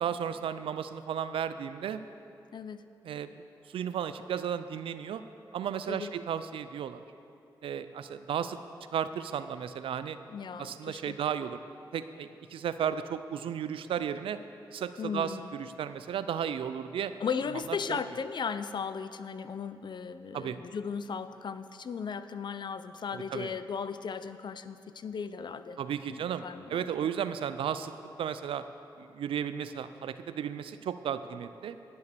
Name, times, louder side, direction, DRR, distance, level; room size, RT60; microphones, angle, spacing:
voice 1, 0.0-2.0 3.0-3.3 3.7-5.2 5.5-7.0 7.6-8.6 8.9-10.2 10.6-11.6 11.9-14.4 14.7-17.1 17.5-17.6 17.9-18.0 20.3-20.6 23.1-23.5 25.8-26.4 26.7-28.6 29.0-31.8, right 8 dB, 80° right, 12 dB, 0.4 m, -34 dB
voice 2, 2.5-2.8 5.9-6.1 10.3-11.2 15.0-15.5 17.2-25.8 26.1-27.1, left 6 dB, 55° left, 12 dB, 0.5 m, -36 dB
10.5 x 6.9 x 6.7 m, 2.6 s
supercardioid pair, 50°, 9 cm